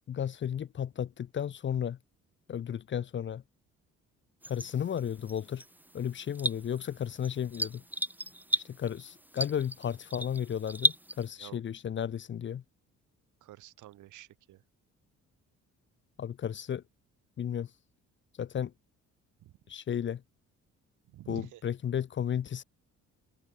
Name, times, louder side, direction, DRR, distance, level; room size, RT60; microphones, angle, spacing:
voice 1, 0.1-2.0 2.5-3.4 4.5-5.6 5.9-7.8 8.6-12.6 16.2-16.8 17.4-17.7 18.4-18.7 19.7-20.2 21.3-22.6, left 9 dB, 40° left, 0.6 m, -33 dB
sound 1, 4.4-11.3, right 1 dB, 5° right, 2.6 m, -35 dB
voice 2, 13.4-14.6 19.4-19.5 21.1-21.6, right 15 dB, 80° right, 1.5 m, -48 dB
cardioid pair, 90°, 30 cm